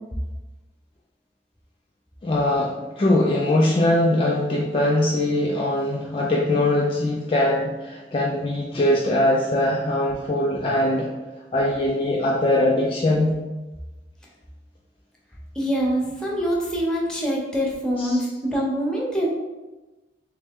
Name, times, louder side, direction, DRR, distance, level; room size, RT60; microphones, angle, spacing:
voice 1, 2.2-11.1 11.5-13.3 18.0-18.2, left 1 dB, 30° left, -2 dB, 0.4 m, -21 dB
voice 2, 15.5-19.3, equal, 5° left, -3 dB, 0.7 m, -24 dB
3.3 x 3.1 x 3.5 m, 1.1 s
head